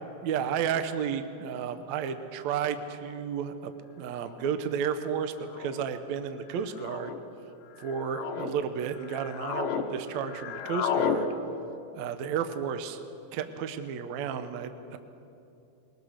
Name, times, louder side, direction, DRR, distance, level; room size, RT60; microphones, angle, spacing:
voice 1, 0.2-3.7 4.0-7.1 7.8-11.3 11.9-13.0 13.3-15.0, right 7 dB, 70° right, 9 dB, 1.7 m, -32 dB
sound 1, 3.1-3.2 4.2-4.5 5.5-5.9 6.7-7.2 7.8-8.5 9.0-9.9 10.1-11.2, left 8 dB, 70° left, 2.6 m, -32 dB
22.5 x 20.0 x 6.5 m, 2.8 s
omnidirectional pair, 4.4 m